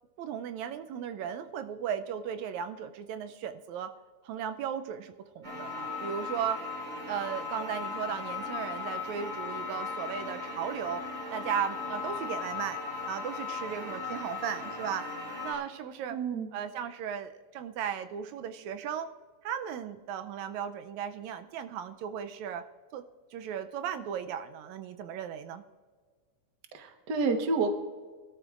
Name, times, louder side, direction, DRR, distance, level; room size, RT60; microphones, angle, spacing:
voice 1, 0.2-4.0 4.2-6.6 7.1-11.0 11.3-15.1 15.4-16.2 16.5-19.1 19.4-22.6 22.9-23.0 23.3-25.6, right 8 dB, 80° right, 9 dB, 1.9 m, -36 dB
sound 1, 5.4-15.5, left 4 dB, 30° right, 4.9 m, -37 dB
voice 2, 16.1-16.5 26.7-27.7, right 4 dB, 50° right, 5 dB, 1.3 m, -29 dB
24.0 x 13.0 x 2.5 m, 1.5 s
omnidirectional pair, 3.3 m